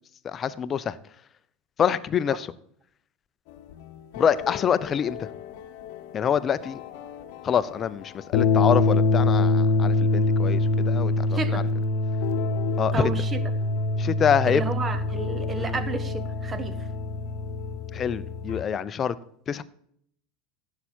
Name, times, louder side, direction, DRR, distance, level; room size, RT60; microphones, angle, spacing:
voice 1, 0.2-0.9 1.8-2.5 4.2-5.2 6.1-6.8 7.4-11.6 12.8-13.1 14.0-14.6 15.6-15.7 17.9-19.1 19.5-19.6, left 8 dB, 30° left, 0.7 m, -26 dB
sound 1, 3.7-18.6, left 2 dB, 55° left, 1.1 m, -25 dB
voice 2, 11.3-11.7 12.9-13.5 14.4-16.9, right 4 dB, 25° right, 1.2 m, -32 dB
15.5 x 7.1 x 4.4 m
figure-of-eight pair, 80°, 0 cm